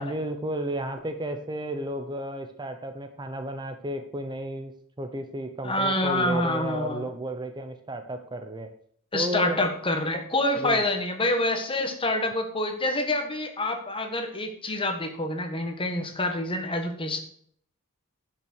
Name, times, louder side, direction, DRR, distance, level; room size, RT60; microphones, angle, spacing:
voice 1, 0.0-8.7 9.1-9.7 10.6-10.8, right 1 dB, 20° right, 7 dB, 0.8 m, -33 dB
voice 2, 5.6-7.0 9.1-17.2, left 1 dB, 25° left, 5 dB, 1.6 m, -27 dB
11.0 x 6.1 x 6.2 m, 0.62 s
head